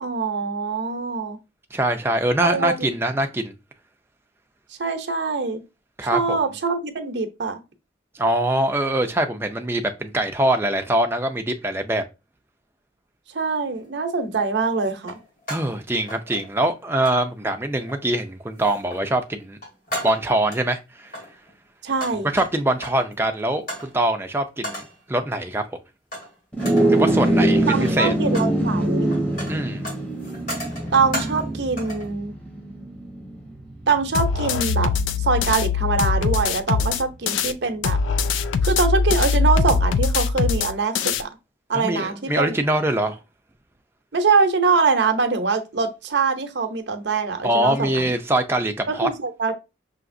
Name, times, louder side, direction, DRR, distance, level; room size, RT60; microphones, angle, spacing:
voice 1, 0.0-1.4 2.4-2.9 4.8-5.6 6.1-7.6 13.3-15.2 21.8-22.3 27.7-29.1 30.9-32.3 33.9-34.9 35.2-38.0 38.6-41.3 41.7-42.6 44.1-48.1 48.9-49.5, right 4 dB, 70° right, 0.7 m, -23 dB
voice 2, 1.7-3.5 6.0-6.4 8.2-12.0 15.5-19.6 20.0-21.2 22.3-24.8 25.1-25.6 26.9-28.1 29.5-29.9 41.7-43.2 47.4-49.1, right 1 dB, 10° right, 0.4 m, -23 dB
sound 1, 13.7-13.9 15.0-15.8 16.1-16.7 17.0-17.2 17.8-18.2 18.6-19.1 19.4-20.6 21.0-23.1 23.7-23.9 24.6-25.0 26.1-26.3 26.6-27.0 27.7-28.6 28.8-31.5 31.8-32.1, equal, 50° left, 1.7 m, -35 dB
sound 2, 26.5-36.1, right 1 dB, 5° left, 0.8 m, -24 dB
sound 3, 34.1-37.5 37.8-41.2, left 5 dB, 85° left, 0.3 m, -22 dB
5.8 x 2.8 x 2.6 m
head